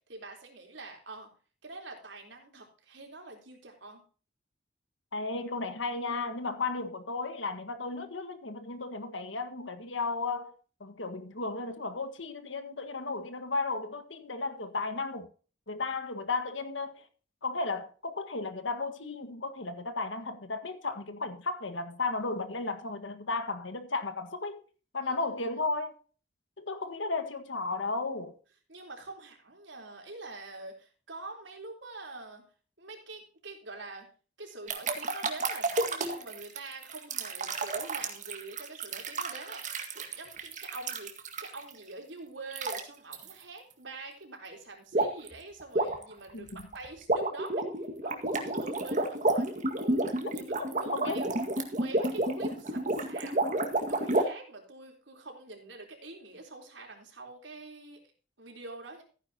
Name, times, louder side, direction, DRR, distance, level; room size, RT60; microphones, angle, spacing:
voice 1, 0.1-1.3 1.6-4.0 25.0-25.1 25.5-25.6 28.7-32.4 32.8-34.1 34.4-39.6 39.9-41.1 41.4-47.6 48.0-49.5 49.8-51.3 51.7-58.0 58.4-59.0, right 3 dB, 75° right, 3.8 m, -45 dB
voice 2, 5.1-10.5 10.8-15.3 15.7-17.1 17.4-24.6 24.9-25.9 26.6-28.3 46.3-46.7 50.7-51.2, left 3 dB, 85° left, 1.7 m, -34 dB
sound 1, 34.7-41.7 42.5-42.8 43.1-43.3 44.9-45.3 45.6-54.2, right 2 dB, 40° right, 1.9 m, -30 dB
15.0 x 9.9 x 2.9 m
head